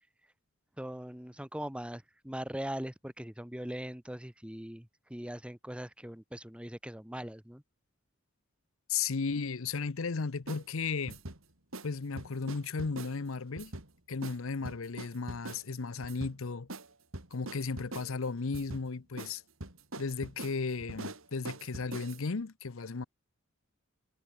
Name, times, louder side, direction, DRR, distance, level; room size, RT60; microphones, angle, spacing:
voice 1, 0.8-7.6, right 1 dB, 5° right, 0.9 m, -41 dB
voice 2, 8.9-11.2 11.8-13.7 14.1-16.7 17.3-19.4 20.0-23.0, left 4 dB, 70° left, 0.7 m, -35 dB
sound 1, 10.5-10.6 11.1-11.4 11.7-11.9 12.2-13.2 13.6-13.9 14.2-14.4 14.6-15.6 16.0-16.3 16.7-16.9 17.1-18.1 18.5-18.9 19.2-19.3 19.6-22.3, right 2 dB, 70° right, 3.8 m, -43 dB
head